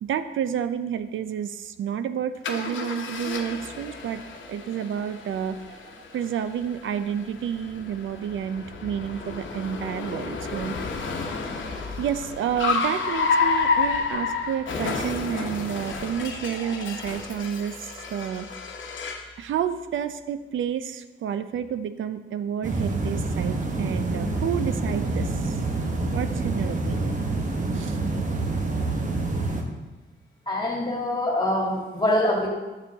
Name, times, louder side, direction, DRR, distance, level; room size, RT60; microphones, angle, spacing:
voice 1, 0.0-4.2 4.5-10.8 11.6-18.5 19.4-25.5 26.1-27.2 27.7-28.0, right 8 dB, 80° right, 11 dB, 0.4 m, -30 dB
Car, 2.4-19.3, left 4 dB, 75° left, 1.0 m, -30 dB
sound 1, 22.6-29.6, right 2 dB, 40° right, 1.1 m, -27 dB
voice 2, 30.5-32.5, left 1 dB, 20° left, -1 dB, 2.0 m, -24 dB
8.7 x 6.9 x 3.5 m, 1.2 s
cardioid pair, 95°, 20 cm